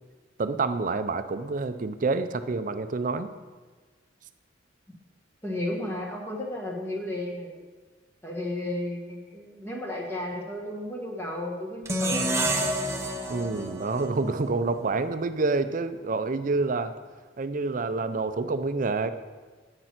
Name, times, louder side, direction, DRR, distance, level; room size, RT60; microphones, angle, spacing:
voice 1, 0.4-3.3 13.3-16.9 17.4-19.1, right 3 dB, 45° right, 11 dB, 0.5 m, -28 dB
voice 2, 5.4-7.5 8.2-12.7, left 1 dB, 15° left, -3 dB, 1.4 m, -33 dB
sound 1, 11.8-15.0, right 1 dB, 15° right, 0.8 m, -29 dB
8.7 x 6.8 x 5.9 m, 1.4 s
head